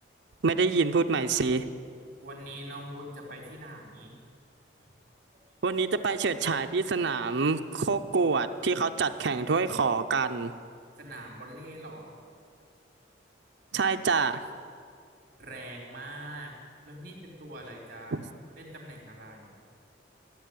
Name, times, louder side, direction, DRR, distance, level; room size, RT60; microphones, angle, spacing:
voice 1, 0.4-1.6 5.6-10.5 13.7-14.4 18.1-18.2, right 4 dB, 75° right, 7 dB, 0.6 m, -26 dB
voice 2, 2.2-4.2 11.0-12.2 15.4-16.5 16.8-18.2 18.6-19.6, right 1 dB, 45° right, 0 dB, 3.5 m, -43 dB
14.0 x 8.2 x 9.5 m, 2.3 s
head